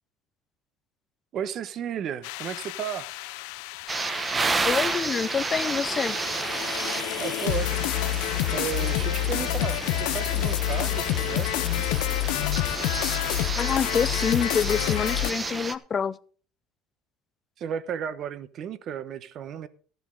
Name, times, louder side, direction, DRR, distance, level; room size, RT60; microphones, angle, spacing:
voice 1, 1.3-3.1 7.2-7.9 8.5-11.6 17.6-19.7, right 8 dB, 45° right, 1.0 m, -33 dB
sound 1, 2.2-15.3, left 17 dB, 90° left, 0.6 m, -29 dB
sound 2, 3.9-15.7, right 3 dB, 20° right, 1.0 m, -31 dB
voice 2, 4.6-6.2 13.6-16.2, left 6 dB, 25° left, 0.6 m, -27 dB
15.0 x 10.5 x 3.9 m
cardioid pair, 145°, 0 cm